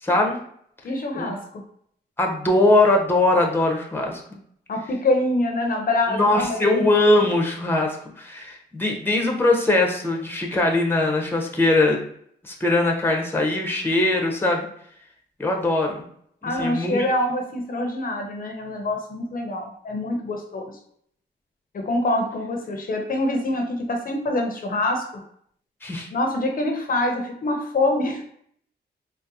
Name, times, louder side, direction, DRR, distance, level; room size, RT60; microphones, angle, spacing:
voice 1, 0.0-0.4 1.1-1.3 2.2-4.2 6.1-12.0 12.4-14.7 15.4-16.0 16.4-17.0 25.8-26.1, left 2 dB, 10° left, 1 dB, 0.7 m, -21 dB
voice 2, 0.8-1.6 4.7-6.9 16.4-20.8 21.7-25.2 26.1-28.3, left 1 dB, 50° left, 3 dB, 0.6 m, -25 dB
3.9 x 2.0 x 2.7 m, 0.67 s
cardioid pair, 80°, 18 cm